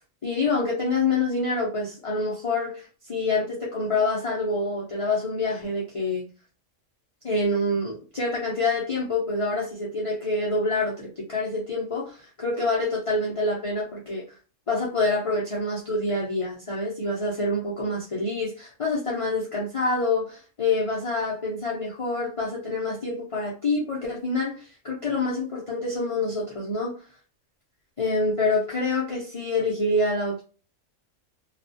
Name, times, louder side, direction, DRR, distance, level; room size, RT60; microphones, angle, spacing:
voice 1, 0.2-6.3 7.2-14.2 14.7-27.0 28.0-30.4, left 2 dB, 55° left, -5 dB, 0.3 m, -26 dB
2.4 x 2.2 x 2.6 m, 0.35 s
omnidirectional pair, 1.4 m